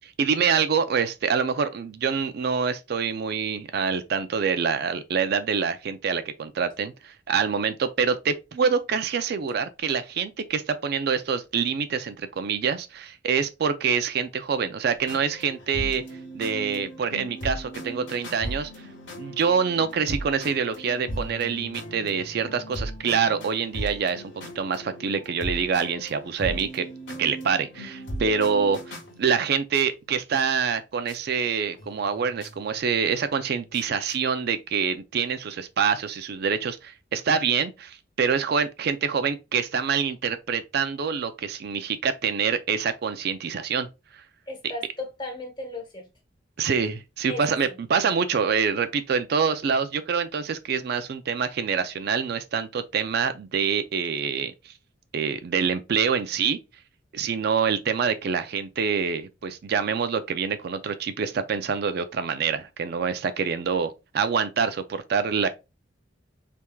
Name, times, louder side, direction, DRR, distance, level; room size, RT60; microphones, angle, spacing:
voice 1, 0.2-16.0 16.3-18.7 19.2-24.2 24.6-26.9 27.2-43.9 46.6-54.7 55.1-56.6 57.1-65.5, right 6 dB, 55° right, 0.4 m, -26 dB
sound 1, 15.0-29.9 30.7-30.8 31.1-31.2 31.7-34.1, right 1 dB, 70° left, 1.5 m, -38 dB
voice 2, 44.5-46.1 47.3-47.8, left 2 dB, 25° left, 1.2 m, -36 dB
4.4 x 3.4 x 2.2 m
head